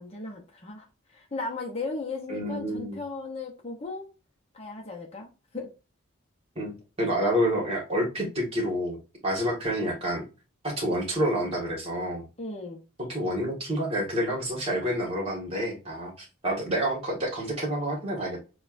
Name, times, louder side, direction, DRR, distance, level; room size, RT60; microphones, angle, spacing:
voice 1, 0.0-4.1 4.5-5.7 12.4-12.8, left 3 dB, 30° left, 0.7 m, -36 dB
voice 2, 2.3-3.0 6.5-10.2 10.6-12.3 13.0-18.4, equal, 25° right, 1.6 m, -28 dB
6.7 x 2.3 x 2.5 m
head